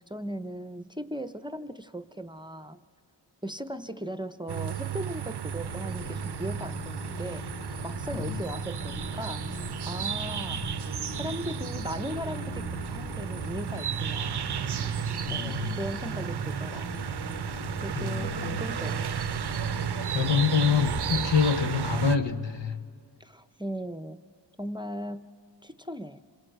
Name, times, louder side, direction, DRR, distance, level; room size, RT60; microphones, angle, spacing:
voice 1, 0.0-2.8 3.4-7.5 7.8-10.6 11.2-14.5 15.0-17.0 17.8-19.1 23.2-24.2 24.6-25.3 25.6-26.2, equal, 10° right, 0.6 m, -38 dB
sound 1, 4.5-22.2, right 9 dB, 65° right, 0.5 m, -33 dB
sound 2, 5.4-22.3, left 1 dB, 35° left, 3.2 m, -39 dB
voice 2, 15.3-15.8 18.0-18.6 20.1-22.8, left 6 dB, 80° left, 1.0 m, -26 dB
26.5 x 23.5 x 7.8 m
wide cardioid pair, 40°, 43 cm